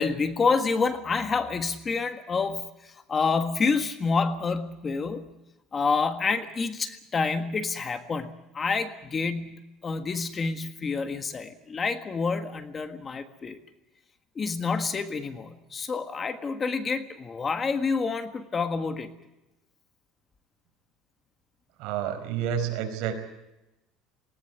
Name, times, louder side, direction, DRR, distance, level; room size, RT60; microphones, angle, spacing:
voice 1, 0.0-5.3 5.7-13.6 14.3-19.1, left 4 dB, 25° left, 8 dB, 1.6 m, -28 dB
voice 2, 21.8-23.1, right 9 dB, 70° right, 6 dB, 4.8 m, -29 dB
20.0 x 18.0 x 9.0 m, 0.95 s
cardioid pair, 135°, 0 cm